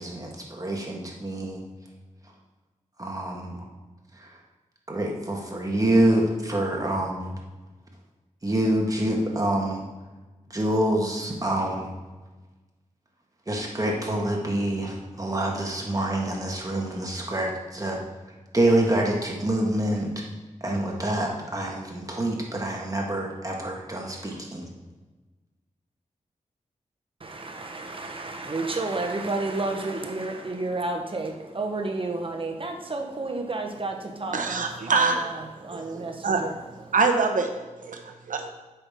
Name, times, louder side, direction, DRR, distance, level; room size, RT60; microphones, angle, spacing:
voice 1, 0.0-1.6 3.0-3.7 4.1-4.4 4.9-7.3 8.4-9.8 10.5-11.9 13.5-18.0 18.5-20.1 20.6-24.7, right 1 dB, 25° right, -1 dB, 1.6 m, -26 dB
voice 2, 27.2-36.9, right 2 dB, 40° right, 3 dB, 1.0 m, -31 dB
voice 3, 34.3-35.3 35.7-36.4 36.9-37.5 37.8-38.5, right 4 dB, 80° right, 5 dB, 0.9 m, -25 dB
7.8 x 5.8 x 3.7 m, 1.2 s
wide cardioid pair, 75°, 13 cm